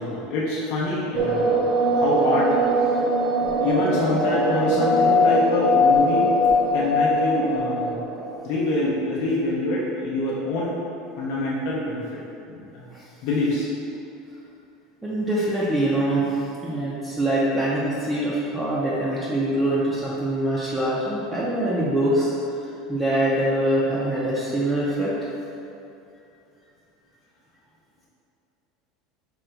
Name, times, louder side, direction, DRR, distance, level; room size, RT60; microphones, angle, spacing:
voice 1, 0.0-2.9 3.6-6.3 6.7-8.0 8.4-10.7 11.2-12.2 12.5-12.9 13.2-13.7, left 2 dB, 60° left, -6 dB, 0.6 m, -26 dB
sound 1, 1.1-8.7, equal, 40° right, 0.9 m, -21 dB
voice 2, 15.0-22.3 22.9-25.1, right 1 dB, 10° right, -8 dB, 0.5 m, -24 dB
3.8 x 2.2 x 4.4 m, 2.8 s
supercardioid pair, 140°, 0 cm